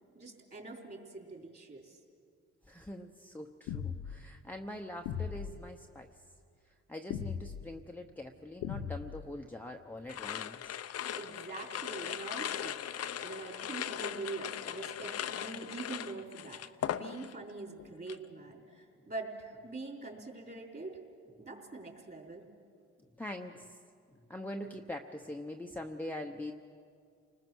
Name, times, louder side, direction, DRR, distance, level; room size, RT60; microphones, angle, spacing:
voice 1, 0.1-2.0 11.1-16.6 16.9-21.0 21.4-22.4, right 3 dB, 30° right, 1 dB, 4.1 m, -44 dB
voice 2, 2.7-6.1 6.7-10.8 23.0-23.8 24.1-26.5, left 1 dB, 5° left, 1 dB, 0.9 m, -43 dB
sound 1, 3.7-4.2 5.1-5.6 7.1-7.7 8.6-9.3, left 8 dB, 90° left, 0.8 m, -38 dB
sound 2, 10.1-17.5 17.8-18.3, left 10 dB, 55° left, 0.7 m, -39 dB
29.5 x 20.5 x 6.2 m, 2.2 s
cardioid pair, 90°, 30 cm